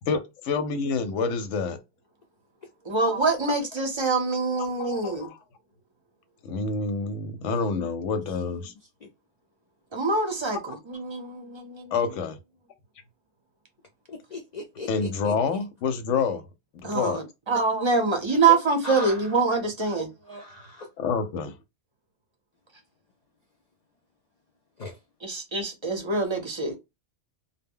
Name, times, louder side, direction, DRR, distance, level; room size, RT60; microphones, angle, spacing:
voice 1, 0.1-1.8 4.6-5.4 6.4-8.7 11.9-12.4 14.9-16.4 16.8-17.2 19.9-20.0 21.0-21.6, left 5 dB, 85° left, 0.9 m, -28 dB
voice 2, 2.9-5.3 9.9-11.8 16.8-20.4 25.2-26.8, right 4 dB, 35° right, 0.5 m, -25 dB
voice 3, 14.1-15.3 18.8-19.3 19.9-20.0 20.3-20.9 24.8-25.0, left 3 dB, 60° left, 0.4 m, -38 dB
2.1 x 2.0 x 3.5 m
omnidirectional pair, 1.2 m